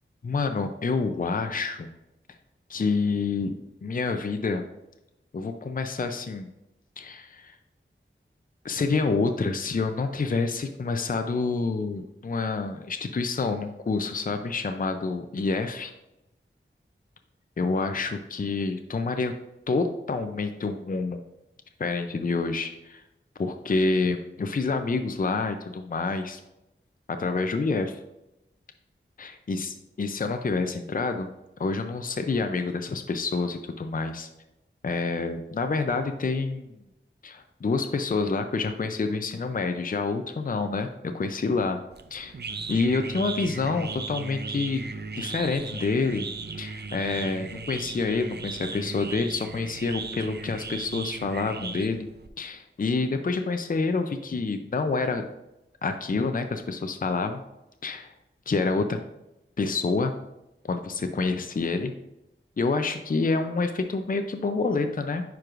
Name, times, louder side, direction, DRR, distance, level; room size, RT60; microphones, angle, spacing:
voice 1, 0.2-1.9 2.7-4.6 5.3-6.5 7.0-7.6 8.6-15.9 17.6-19.4 19.7-21.2 21.8-23.0 23.4-26.4 27.1-28.0 29.2-31.3 31.6-34.3 34.8-36.8 37.2-41.8 42.1-42.4 42.7-44.8 45.1-46.3 46.5-52.1 52.4-55.3 55.8-57.4 57.8-58.1 58.5-59.0 59.6-60.1 60.6-61.9 62.6-65.2, left 4 dB, 40° left, 7 dB, 0.5 m, -28 dB
sound 1, 41.9-52.3, right 4 dB, 50° right, 0.5 m, -37 dB
9.6 x 4.6 x 2.5 m, 0.92 s
wide cardioid pair, 45°, 21 cm